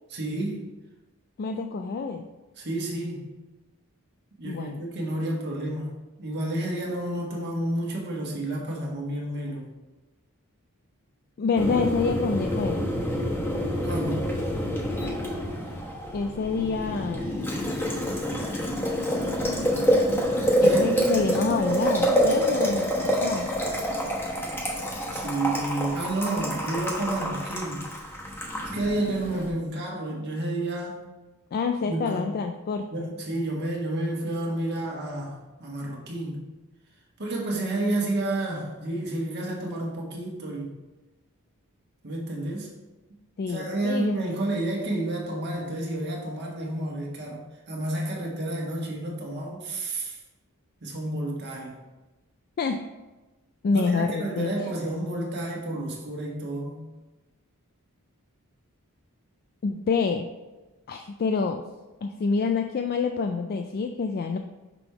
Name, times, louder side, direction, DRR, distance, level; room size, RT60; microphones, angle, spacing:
voice 1, 0.1-0.6 2.6-3.3 4.4-5.9 6.2-9.7 13.8-14.3 20.6-21.0 25.1-27.8 28.6-31.0 31.8-32.3 32.9-36.4 37.2-40.7 42.0-42.7 43.5-50.2 50.8-51.7 53.7-56.9, right 1 dB, 50° right, -2 dB, 1.4 m, -30 dB
voice 2, 1.4-2.2 4.4-4.8 11.4-12.9 16.1-17.4 20.6-23.5 31.5-33.1 43.4-44.2 52.6-52.8 53.6-54.5 59.6-60.3 60.9-61.6 62.0-64.4, left 4 dB, 45° left, 5 dB, 0.3 m, -27 dB
Boiling, 11.6-29.5, equal, 10° left, 1.1 m, -27 dB
6.0 x 3.5 x 4.5 m, 1.1 s
head